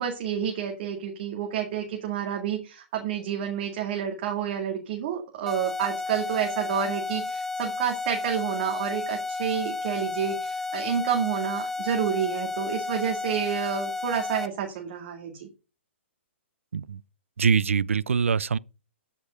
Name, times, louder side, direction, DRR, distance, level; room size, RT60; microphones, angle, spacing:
voice 1, 0.0-15.5, right 8 dB, 50° right, 2.1 m, -29 dB
sound 1, 5.5-14.5, left 3 dB, 5° left, 0.7 m, -32 dB
voice 2, 17.4-18.6, right 6 dB, 85° right, 0.5 m, -23 dB
13.0 x 5.2 x 5.1 m
hypercardioid pair, 135°, 7 cm